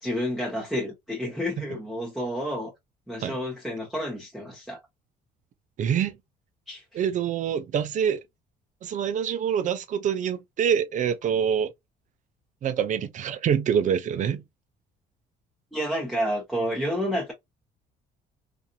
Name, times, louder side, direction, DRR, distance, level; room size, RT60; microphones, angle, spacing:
voice 1, 0.0-2.7 3.1-4.8 6.7-7.0 15.7-17.3, equal, ahead, 0.9 m, -30 dB
voice 2, 5.8-6.2 6.9-8.2 8.8-11.7 12.6-14.4, right 8 dB, 45° right, 0.5 m, -25 dB
2.8 x 2.6 x 2.2 m
cardioid pair, 110°, 17 cm